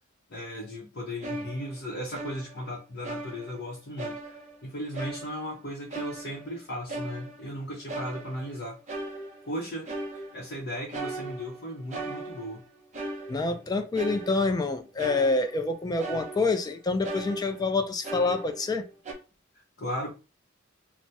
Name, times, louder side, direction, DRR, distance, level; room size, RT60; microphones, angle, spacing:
voice 1, 0.3-4.4 4.6-8.8 9.5-9.9 10.3-12.6 19.8-20.1, equal, 55° left, 0.7 m, -36 dB
sound 1, 1.2-2.7 3.0-3.7 4.0-4.7 4.9-5.5 5.9-7.6 7.9-8.6 8.9-9.6 9.9-10.5 10.9-12.6 12.9-13.6 14.0-14.7 15.0-15.7 16.0-16.7 17.0-18.8 19.1-19.2, right 2 dB, 35° right, 0.7 m, -38 dB
voice 2, 13.3-18.9, left 3 dB, 20° left, 0.3 m, -27 dB
2.7 x 2.0 x 3.3 m
head